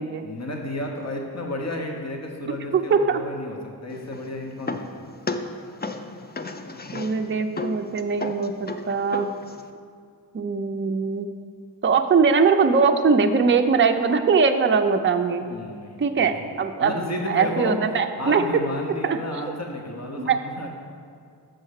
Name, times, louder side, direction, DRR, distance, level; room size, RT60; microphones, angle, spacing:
voice 1, 0.2-5.0 15.5-16.2 16.8-17.8 18.2-20.7, left 1 dB, 40° left, 1 dB, 1.1 m, -32 dB
voice 2, 2.7-3.2 6.9-9.3 10.3-11.3 11.8-15.4 16.0-16.9 17.3-18.4 19.1-19.2 20.2-20.4, right 5 dB, 30° right, 6 dB, 0.4 m, -21 dB
sound 1, 3.9-9.7, left 3 dB, 25° left, 0.4 m, -35 dB
6.4 x 5.4 x 6.4 m, 2.3 s
wide cardioid pair, 65°, 40 cm